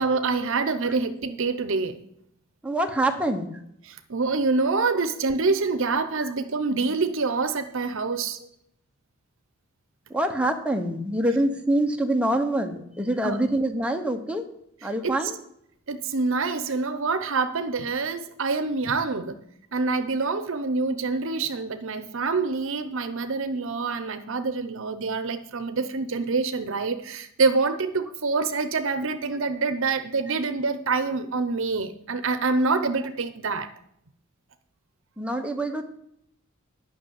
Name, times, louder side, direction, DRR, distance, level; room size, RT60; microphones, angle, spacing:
voice 1, 0.0-2.0 3.9-8.4 13.2-13.4 15.0-15.3 15.9-19.4 19.7-33.7, right 4 dB, 65° right, 0.8 m, -26 dB
voice 2, 2.6-3.5 10.1-14.4 14.8-15.4 35.2-35.8, right 1 dB, 5° right, 1.0 m, -25 dB
10.0 x 6.0 x 7.3 m
head